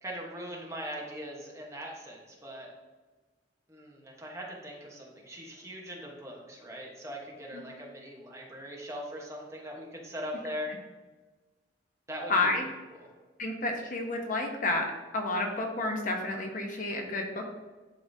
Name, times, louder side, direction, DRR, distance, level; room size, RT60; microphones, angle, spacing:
voice 1, 0.0-2.7 3.7-10.7 12.1-12.5 13.0-13.1, equal, 15° right, -2 dB, 1.1 m, -40 dB
voice 2, 12.3-12.7 13.4-14.9 15.1-17.4, left 2 dB, 45° left, 2 dB, 0.8 m, -30 dB
11.0 x 3.8 x 2.7 m, 1.3 s
head